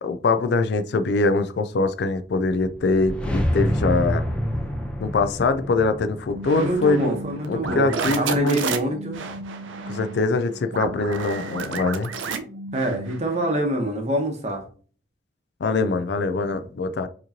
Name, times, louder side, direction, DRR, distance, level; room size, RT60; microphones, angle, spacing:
voice 1, 0.0-4.2 5.0-7.2 7.5-8.6 9.9-12.1 15.6-17.1, left 3 dB, 60° left, 9 dB, 0.3 m, -23 dB
sound 1, 2.7-7.6, equal, 5° left, 0.6 m, -28 dB
sound 2, 6.3-13.6, right 4 dB, 75° right, 0.5 m, -32 dB
voice 2, 6.6-9.2 12.7-14.6, right 1 dB, 35° right, 3 dB, 0.9 m, -26 dB
4.8 x 3.0 x 2.7 m, 0.41 s
head